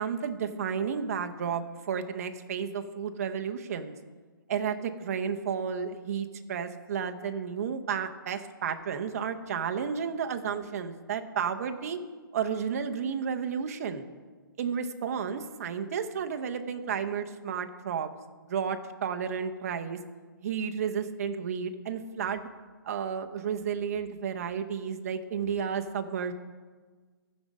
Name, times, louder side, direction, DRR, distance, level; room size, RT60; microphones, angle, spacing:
voice 1, 0.0-3.9 4.5-12.0 12.3-14.0 14.6-18.1 18.5-20.0 20.4-22.4 22.8-26.3, right 7 dB, 45° right, 6 dB, 0.7 m, -32 dB
14.0 x 5.2 x 5.2 m, 1.4 s
hypercardioid pair, 170°, 12 cm